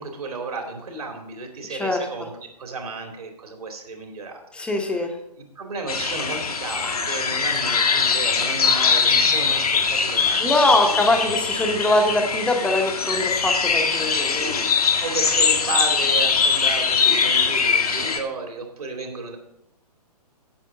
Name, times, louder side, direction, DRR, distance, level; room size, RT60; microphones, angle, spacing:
voice 1, 0.0-5.1 5.4-11.0 14.1-14.7 15.0-19.4, right 3 dB, 65° right, 3 dB, 2.5 m, -33 dB
voice 2, 1.7-2.1 4.5-5.2 10.4-14.6, left 2 dB, 5° left, 3 dB, 1.0 m, -22 dB
sound 1, 5.9-18.2, left 5 dB, 65° left, 1.5 m, -22 dB
8.8 x 6.1 x 6.7 m, 0.81 s
figure-of-eight pair, 130°, 21 cm